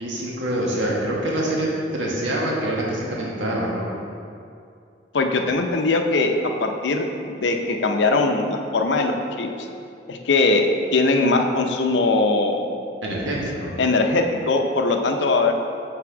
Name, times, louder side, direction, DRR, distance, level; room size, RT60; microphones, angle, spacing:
voice 1, 0.0-1.7 1.9-3.9 13.0-13.7, right 1 dB, 90° right, -4 dB, 1.3 m, -25 dB
voice 2, 5.1-9.5 10.1-12.6 13.8-15.5, left 3 dB, 70° left, 4 dB, 0.6 m, -21 dB
6.0 x 4.2 x 4.8 m, 2.5 s
head